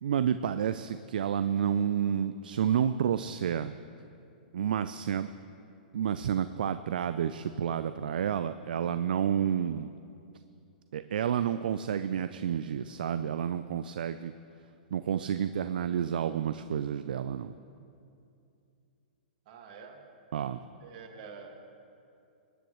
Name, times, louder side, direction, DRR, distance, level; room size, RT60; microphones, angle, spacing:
voice 1, 0.0-3.7 4.5-5.3 5.9-9.9 10.9-14.3 14.9-17.5 20.3-20.6, right 9 dB, 70° right, 11 dB, 0.4 m, -30 dB
voice 2, 19.5-20.0 20.8-21.5, right 5 dB, 50° right, 3 dB, 2.0 m, -47 dB
22.0 x 9.9 x 3.2 m, 2.6 s
hypercardioid pair, 120°, 5 cm